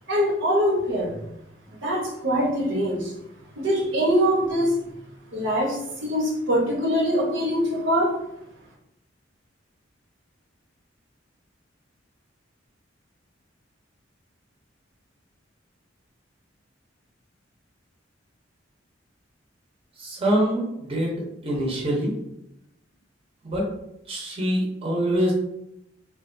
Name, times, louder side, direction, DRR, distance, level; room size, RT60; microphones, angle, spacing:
voice 1, 0.1-1.2 1.7-3.1 3.6-4.7 5.3-8.1, equal, 75° right, -2 dB, 0.9 m, -23 dB
voice 2, 20.0-22.1 23.4-23.7 24.1-25.3, equal, 30° right, -3 dB, 0.7 m, -25 dB
3.3 x 2.4 x 2.6 m, 0.83 s
head